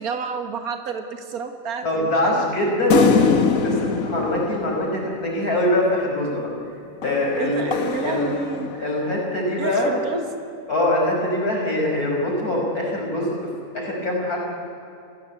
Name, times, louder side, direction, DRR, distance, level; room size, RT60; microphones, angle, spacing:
voice 1, 0.0-2.7 7.4-8.7 9.6-10.3, right 5 dB, 85° right, 6 dB, 2.0 m, -30 dB
voice 2, 1.8-6.5 7.0-9.9 10.7-13.4 13.7-14.4, left 1 dB, 90° left, -1 dB, 5.8 m, -23 dB
sound 1, 2.9-5.6 7.0-9.1, left 5 dB, 65° left, 1.7 m, -23 dB
29.0 x 16.0 x 8.3 m, 2.6 s
omnidirectional pair, 1.5 m